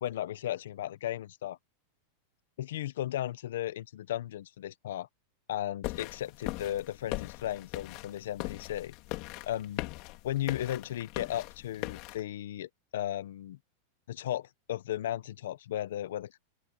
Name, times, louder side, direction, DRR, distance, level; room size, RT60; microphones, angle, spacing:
voice 1, 0.0-1.6 2.6-5.1 5.5-8.9 9.4-9.8 10.2-13.6 14.1-16.3, left 12 dB, 80° left, 1.0 m, -35 dB
sound 1, 5.8-12.2, left 21 dB, 45° left, 3.2 m, -40 dB
open air
supercardioid pair, 160°, 0 cm